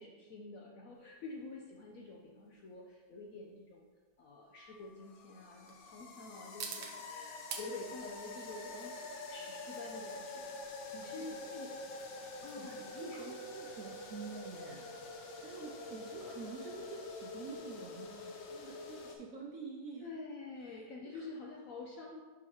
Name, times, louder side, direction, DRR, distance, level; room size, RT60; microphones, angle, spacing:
voice 1, 0.0-3.9 4.2-10.5 10.9-11.7 12.4-13.3 20.0-22.2, left 3 dB, 65° left, -1 dB, 0.8 m, -48 dB
sound 1, 1.0-17.6, right 6 dB, 85° right, 1.5 m, -53 dB
sound 2, 4.5-19.2, left 2 dB, 80° left, 1.5 m, -46 dB
voice 2, 12.6-15.0 15.4-20.1 20.7-21.3, right 4 dB, 65° right, -1 dB, 0.9 m, -48 dB
10.0 x 3.8 x 3.0 m, 1.4 s
omnidirectional pair, 2.0 m